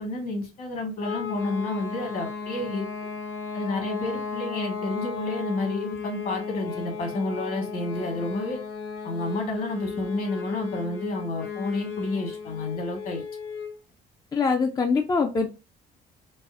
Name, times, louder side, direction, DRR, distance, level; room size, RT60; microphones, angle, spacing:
voice 1, 0.0-2.9 3.5-8.6 9.0-13.2, left 2 dB, 60° left, 1.4 m, -30 dB
sound 1, 1.0-13.8, left 5 dB, 75° left, 0.8 m, -35 dB
voice 2, 14.3-15.5, left 4 dB, 20° left, 0.3 m, -23 dB
4.0 x 2.0 x 2.4 m
cardioid pair, 110°, 17 cm